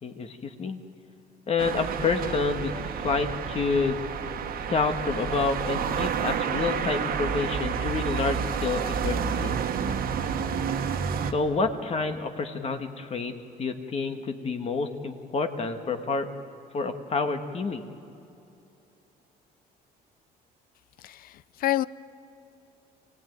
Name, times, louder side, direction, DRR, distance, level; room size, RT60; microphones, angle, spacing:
voice 1, 0.0-0.8 1.5-4.0 4.7-9.6 11.3-13.3 13.6-16.3 16.7-17.8, left 4 dB, 40° left, 6 dB, 1.7 m, -28 dB
sound 1, 1.6-11.3, right 7 dB, 60° right, 1.5 m, -30 dB
voice 2, 21.0-21.9, left 14 dB, 60° left, 19 dB, 0.6 m, -28 dB
25.0 x 17.0 x 9.4 m, 2.8 s
cardioid pair, 110°, 17 cm